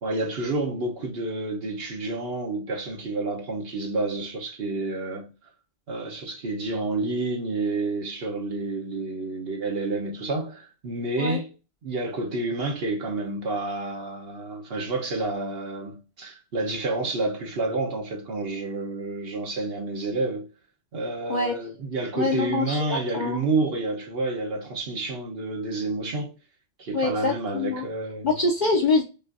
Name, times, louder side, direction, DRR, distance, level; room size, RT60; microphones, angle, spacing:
voice 1, 0.0-5.3 5.9-11.5 11.8-20.5 20.9-26.3 26.8-28.3, right 2 dB, 60° right, 1.1 m, -29 dB
voice 2, 22.1-23.4 26.9-27.9 28.2-29.0, left 3 dB, 45° left, 0.9 m, -25 dB
5.4 x 2.4 x 2.5 m
omnidirectional pair, 1.2 m